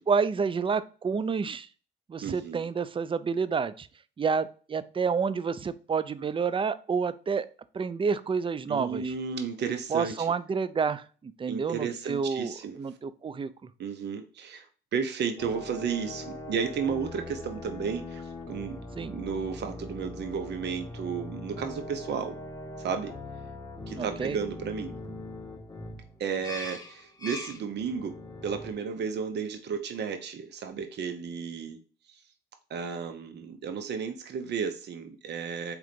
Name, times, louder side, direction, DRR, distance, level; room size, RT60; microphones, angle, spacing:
voice 1, 0.1-1.7 2.1-3.9 4.2-7.5 7.7-9.1 9.9-13.5 19.0-19.2 24.0-24.4, right 5 dB, 25° right, 15 dB, 0.5 m, -29 dB
voice 2, 2.2-2.7 8.7-10.3 11.5-12.8 13.8-22.4 22.8-23.2 23.9-25.0 26.2-31.8 32.1-32.2 32.7-35.8, right 6 dB, 60° right, 7 dB, 0.8 m, -33 dB
sound 1, 15.4-28.7, left 2 dB, 20° left, 1.5 m, -41 dB
4.8 x 3.8 x 5.1 m, 0.38 s
cardioid pair, 90°, 20 cm